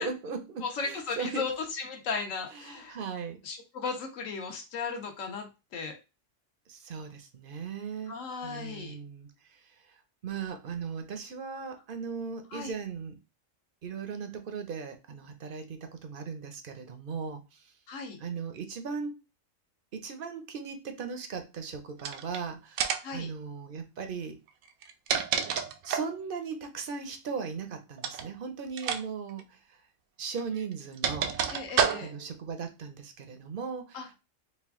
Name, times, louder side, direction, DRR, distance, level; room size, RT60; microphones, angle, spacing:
voice 1, 0.0-1.4 2.5-3.4 6.7-8.2 8.4-13.2 13.8-17.7 18.2-19.1 19.9-24.4 25.8-29.8 30.2-31.4 32.0-34.1, right 5 dB, 50° right, 7 dB, 0.7 m, -38 dB
voice 2, 0.6-3.0 3.4-5.9 8.1-8.9 12.5-12.7 17.9-18.2 23.0-23.3 31.5-32.1 33.9-34.1, left 5 dB, 70° left, 3 dB, 1.3 m, -36 dB
sound 1, 22.0-22.4 22.8-23.2 24.7-26.2 28.0-28.3 28.8-29.0 29.3-29.4 30.4-32.3, right 7 dB, 85° right, 1.0 m, -29 dB
4.2 x 2.4 x 3.5 m, 0.27 s
omnidirectional pair, 1.4 m